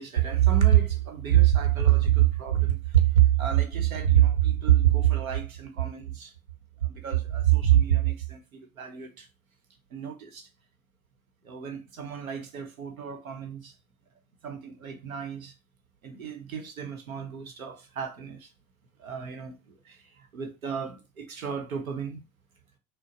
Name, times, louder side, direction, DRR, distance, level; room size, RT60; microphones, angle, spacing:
voice 1, 0.0-6.3 6.8-9.3 9.9-10.5 11.4-13.7 14.4-15.5 16.0-18.5 19.0-19.5 19.8-22.2, right 12 dB, 75° right, 1.0 m, -25 dB
6.3 x 2.1 x 4.0 m
figure-of-eight pair, 75°, 42 cm